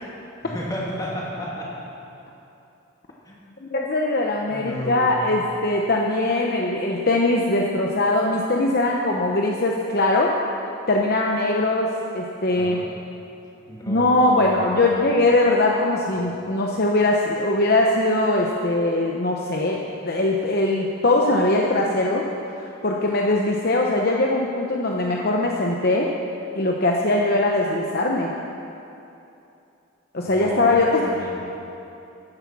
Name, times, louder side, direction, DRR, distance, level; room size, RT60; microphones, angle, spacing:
voice 1, 0.4-1.7 3.2-3.4 4.5-5.2 12.5-12.9 13.7-15.1 30.2-31.4, equal, 20° left, -6 dB, 2.8 m, -33 dB
voice 2, 3.6-10.3 10.9-12.8 13.9-22.2 22.8-26.1 26.5-28.3 30.1-31.0, left 2 dB, 45° left, -1 dB, 0.9 m, -21 dB
14.5 x 10.0 x 6.1 m, 2.8 s
head